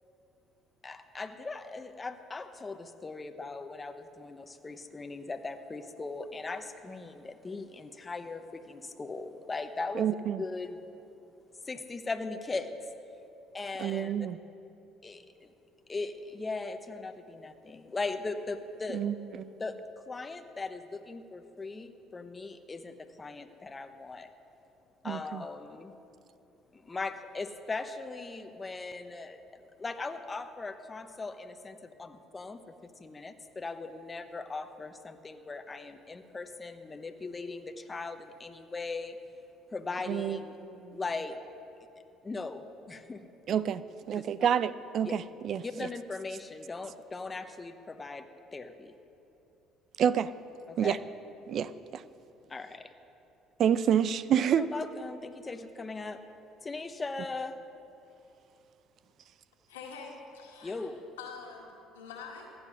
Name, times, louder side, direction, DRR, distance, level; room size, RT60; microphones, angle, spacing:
voice 1, 0.8-10.1 10.4-10.8 11.6-12.8 13.5-14.1 15.0-15.5 15.9-19.0 19.6-19.8 20.1-24.3 25.0-25.9 26.7-29.4 29.8-39.2 39.7-40.6 40.9-41.4 42.2-43.2 43.5-43.6 44.2-44.3 45.0-45.1 45.6-48.9 50.7-51.0 52.5-52.9 54.6-56.2 56.6-57.6 60.6-61.0, left 3 dB, 25° left, 8 dB, 0.9 m, -39 dB
voice 2, 10.0-10.4 13.8-14.4 18.9-19.6 25.0-25.4 40.1-41.0 43.5-43.8 44.1-45.6 50.0-50.3 50.8-51.0 51.5-52.0 53.6-54.7, right 9 dB, 55° right, 16 dB, 0.5 m, -28 dB
voice 3, 59.7-60.9 61.2-62.5, left 5 dB, 90° left, 0 dB, 1.9 m, -45 dB
15.0 x 9.6 x 6.3 m, 2.8 s
hypercardioid pair, 60°, 0 cm